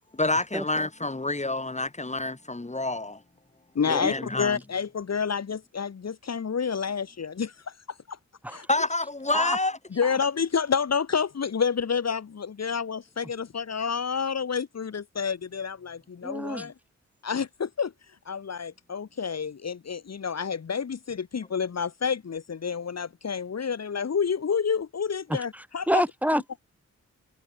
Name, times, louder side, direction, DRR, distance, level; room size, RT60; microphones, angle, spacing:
voice 1, 0.1-3.2 3.9-4.6 8.7-9.8, left 2 dB, 25° left, 6.8 m, -28 dB
voice 2, 3.7-8.2 8.5-8.7 9.9-16.7 17.2-26.0, left 6 dB, 60° left, 2.3 m, -29 dB
voice 3, 16.2-16.7 25.3-25.4 25.9-26.6, equal, 5° right, 5.8 m, -27 dB
wide cardioid pair, 85°, 30 cm